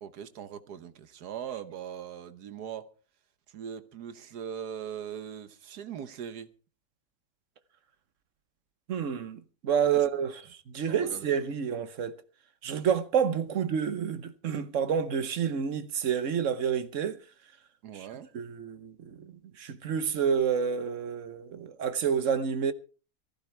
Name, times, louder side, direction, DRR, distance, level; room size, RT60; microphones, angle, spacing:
voice 1, 0.0-2.8 3.5-6.5 9.9-10.1 10.9-11.2 17.8-18.3, right 8 dB, 75° right, 1.5 m, -40 dB
voice 2, 8.9-12.1 12.6-17.2 17.9-18.1 18.3-19.3 19.6-22.7, right 7 dB, 55° right, 1.1 m, -29 dB
19.5 x 15.0 x 3.3 m
omnidirectional pair, 1.7 m